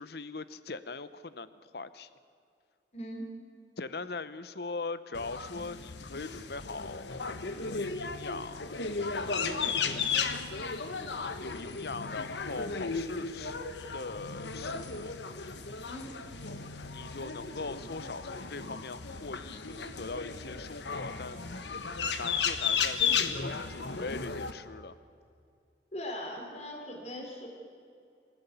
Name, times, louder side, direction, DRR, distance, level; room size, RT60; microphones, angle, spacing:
voice 1, 0.0-2.1 3.8-8.6 9.2-9.6 11.4-13.6 13.9-15.2 16.9-21.5 22.2-24.9, left 3 dB, 65° left, 14 dB, 0.9 m, -41 dB
voice 2, 2.9-3.3 15.8-16.1 25.9-27.5, equal, 40° left, 0 dB, 4.0 m, -40 dB
sound 1, 5.1-24.5, left 5 dB, 80° left, 1.4 m, -35 dB
25.5 x 15.5 x 8.3 m, 2.4 s
head